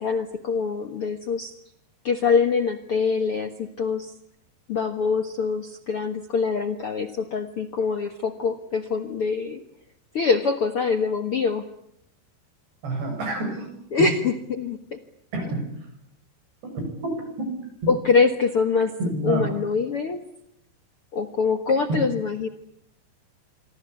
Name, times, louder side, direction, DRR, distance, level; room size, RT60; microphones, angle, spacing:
voice 1, 0.0-1.5 2.0-4.1 4.7-9.6 10.1-11.6 13.9-14.8 17.9-18.9 19.2-20.2 21.1-22.5, left 5 dB, 60° left, 8 dB, 1.5 m, -24 dB
voice 2, 12.8-13.7 14.0-14.1 15.3-15.6 16.7-17.1 17.4-17.5 17.8-17.9 19.1-19.5 21.9-22.0, right 2 dB, 90° right, 5 dB, 9.9 m, -28 dB
27.0 x 24.5 x 8.5 m, 0.77 s
omnidirectional pair, 4.7 m